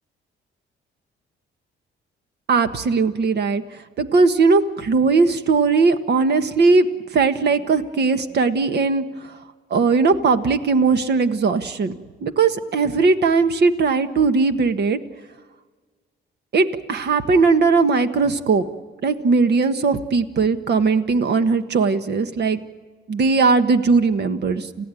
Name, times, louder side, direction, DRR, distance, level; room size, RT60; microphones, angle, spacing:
voice 1, 2.5-6.9 7.1-9.4 9.7-11.9 12.2-15.0 16.5-18.6 19.0-22.6 23.1-24.9, right 4 dB, 55° right, 9 dB, 1.5 m, -19 dB
29.5 x 16.0 x 9.1 m, 1.5 s
cardioid pair, 90°, 20 cm